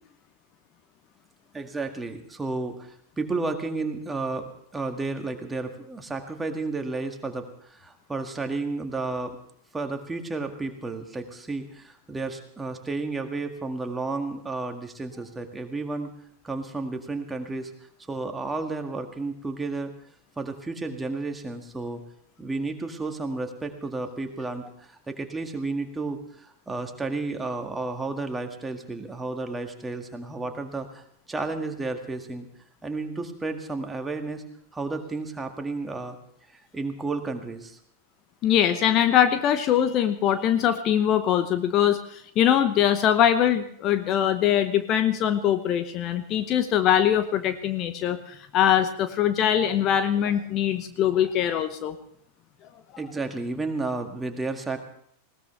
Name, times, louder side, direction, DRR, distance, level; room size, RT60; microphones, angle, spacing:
voice 1, 1.5-9.4 9.7-16.1 16.4-17.7 18.1-19.9 20.4-22.0 22.4-32.5 32.8-34.4 34.7-36.2 36.5-37.8 53.0-54.8, right 3 dB, 10° right, 5 dB, 1.9 m, -32 dB
voice 2, 38.4-52.0, left 10 dB, 35° left, 10 dB, 0.9 m, -22 dB
20.0 x 18.0 x 3.4 m, 0.65 s
figure-of-eight pair, 90°, 0 cm